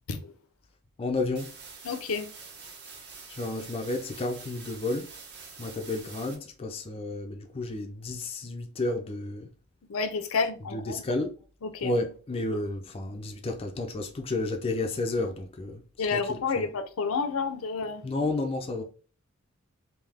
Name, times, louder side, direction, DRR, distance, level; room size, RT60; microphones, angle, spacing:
voice 1, 1.0-1.6 3.3-5.1 5.6-9.5 10.7-11.3 11.8-15.8 16.1-16.7 18.0-18.8, left 2 dB, 25° left, 0.4 m, -31 dB
sound 1, 1.4-6.4, right 5 dB, 50° right, 1.0 m, -46 dB
voice 2, 1.8-2.3 9.9-11.0 11.6-11.9 16.0-18.0, left 5 dB, 70° left, 0.6 m, -30 dB
3.5 x 2.7 x 3.4 m
head